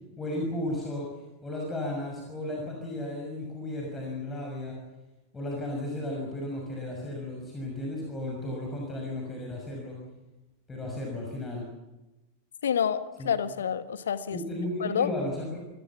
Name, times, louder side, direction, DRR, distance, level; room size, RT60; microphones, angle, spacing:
voice 1, 0.2-1.1 1.4-4.8 5.3-10.0 10.7-11.7 13.2-13.3 14.3-15.6, left 1 dB, 15° left, 0 dB, 6.2 m, -34 dB
voice 2, 12.6-14.4 14.8-15.1, left 8 dB, 65° left, 13 dB, 1.4 m, -28 dB
28.5 x 17.0 x 7.3 m, 1.0 s
figure-of-eight pair, 90°, 0 cm